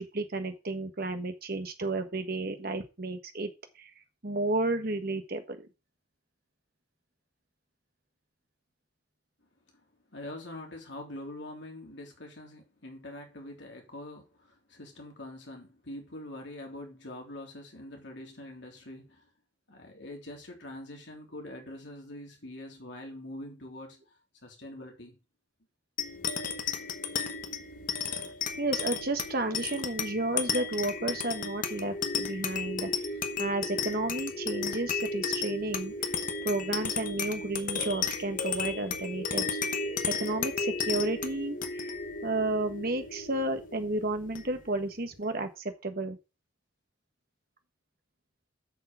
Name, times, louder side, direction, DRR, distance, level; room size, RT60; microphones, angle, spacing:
voice 1, 0.0-3.5 3.8-3.9 4.2-5.7 28.6-32.9 33.4-35.9 36.4-39.9 40.2-46.2, right 2 dB, 50° right, 1.5 m, -32 dB
voice 2, 10.1-19.3 19.7-24.0 24.4-25.2, left 1 dB, 60° left, 3.4 m, -44 dB
sound 1, 26.0-44.8, left 5 dB, 40° left, 1.1 m, -34 dB
7.8 x 6.8 x 6.0 m
head